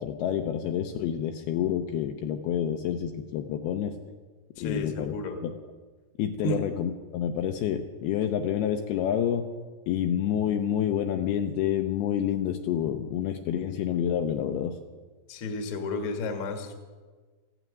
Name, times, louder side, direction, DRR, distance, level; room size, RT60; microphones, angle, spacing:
voice 1, 0.0-3.9 4.6-5.1 5.4-5.5 6.2-9.5 9.9-14.8, left 9 dB, 80° left, 5 dB, 2.4 m, -28 dB
voice 2, 4.6-5.4 6.4-6.6 15.3-16.7, left 2 dB, 55° left, 5 dB, 1.5 m, -32 dB
15.5 x 9.2 x 9.3 m, 1.4 s
omnidirectional pair, 5.0 m